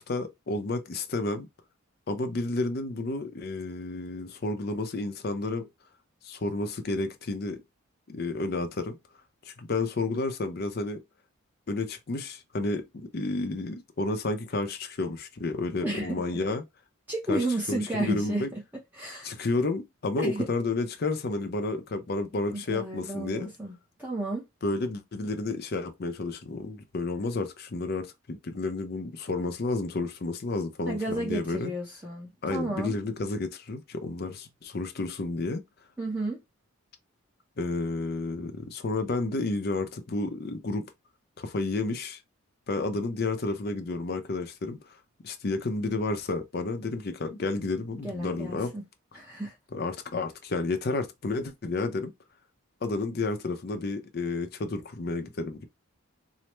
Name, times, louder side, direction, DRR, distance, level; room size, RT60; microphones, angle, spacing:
voice 1, 0.0-1.5 2.1-5.7 6.2-7.6 8.1-9.0 9.4-11.0 11.7-16.6 17.3-17.4 17.7-18.5 19.2-23.5 24.6-31.7 32.4-35.6 37.6-40.9 41.4-42.2 42.7-44.8 45.2-48.7 49.7-52.1 52.8-55.6, left 3 dB, 45° left, 0.5 m, -31 dB
voice 2, 15.8-16.2 17.1-18.6 18.9-19.3 20.2-20.4 22.5-24.4 30.9-32.9 36.0-36.4 48.0-48.8 49.1-49.6, right 2 dB, 10° right, 0.6 m, -32 dB
3.2 x 2.0 x 3.0 m
head